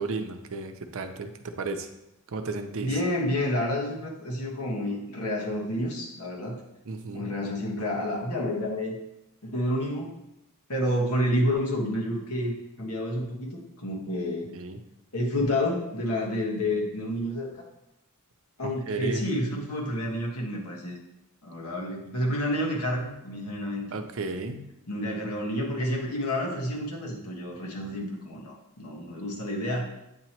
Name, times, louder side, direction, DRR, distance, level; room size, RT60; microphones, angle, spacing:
voice 1, 0.0-1.9 2.3-2.9 6.9-7.3 14.5-14.8 18.6-19.2 23.9-24.6, right 3 dB, 65° right, 7 dB, 0.6 m, -33 dB
voice 2, 2.8-6.6 7.1-9.0 9.4-10.1 10.7-12.5 12.8-14.5 15.1-17.6 18.6-21.0 21.4-23.9 24.9-29.9, left 1 dB, 85° left, -2 dB, 1.5 m, -29 dB
8.7 x 3.0 x 4.4 m, 0.88 s
head